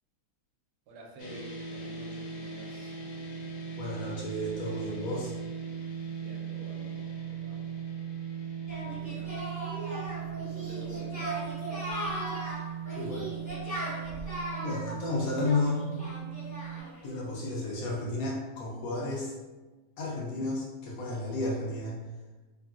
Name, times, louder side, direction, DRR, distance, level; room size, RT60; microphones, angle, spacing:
voice 1, 0.9-3.0 6.2-7.6 8.6-9.3 10.5-11.4, right 1 dB, 75° right, 0 dB, 1.1 m, -49 dB
sound 1, 1.2-16.8, right 7 dB, 90° left, 1.2 m, -38 dB
voice 2, 3.8-5.3 13.0-13.3 14.6-15.8 17.0-19.3 20.0-22.0, left 2 dB, 70° left, -3 dB, 0.9 m, -32 dB
Singing, 8.7-17.0, right 1 dB, 15° left, 0.6 m, -38 dB
2.9 x 2.5 x 2.4 m, 1.2 s
omnidirectional pair, 1.8 m